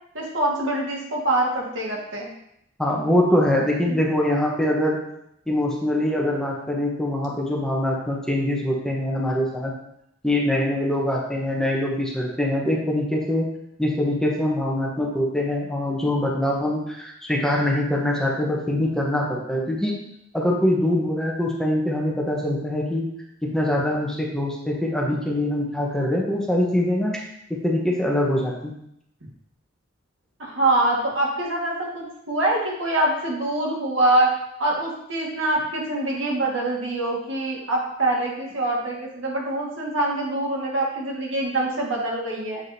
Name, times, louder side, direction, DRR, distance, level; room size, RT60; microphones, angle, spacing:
voice 1, 0.1-2.3 30.4-34.3 34.6-42.6, right 2 dB, 90° right, -2 dB, 1.7 m, -24 dB
voice 2, 2.8-5.0 5.5-9.7 10.2-13.5 13.8-19.9 20.3-23.1 23.4-27.2 27.5-28.7, left 1 dB, 5° left, -2 dB, 0.9 m, -23 dB
7.4 x 4.8 x 2.7 m, 0.76 s
head